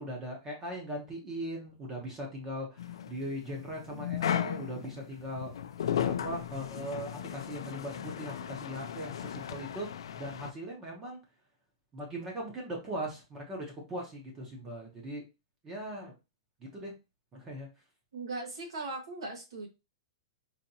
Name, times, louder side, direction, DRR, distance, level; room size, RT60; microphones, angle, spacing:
voice 1, 0.0-5.7 6.0-11.2 11.9-15.2 15.6-16.1 16.6-16.9 17.3-17.7, equal, 15° right, 0 dB, 0.7 m, -39 dB
sound 1, 2.8-10.5, left 9 dB, 70° left, 0.3 m, -36 dB
voice 2, 18.1-19.7, right 3 dB, 80° right, 2 dB, 1.4 m, -38 dB
4.0 x 2.8 x 2.7 m, 0.27 s
supercardioid pair, 180°, 3 cm